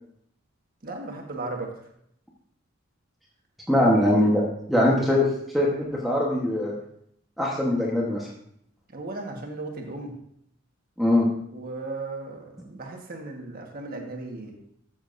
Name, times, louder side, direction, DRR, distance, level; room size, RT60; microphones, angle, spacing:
voice 1, 0.8-1.7 3.7-3.9 8.9-10.1 11.5-14.5, right 2 dB, 45° right, 1 dB, 1.4 m, -36 dB
voice 2, 3.7-5.3 5.5-6.7 7.4-8.3 11.0-11.3, left 1 dB, ahead, -4 dB, 1.2 m, -22 dB
13.5 x 7.1 x 2.6 m, 0.70 s
head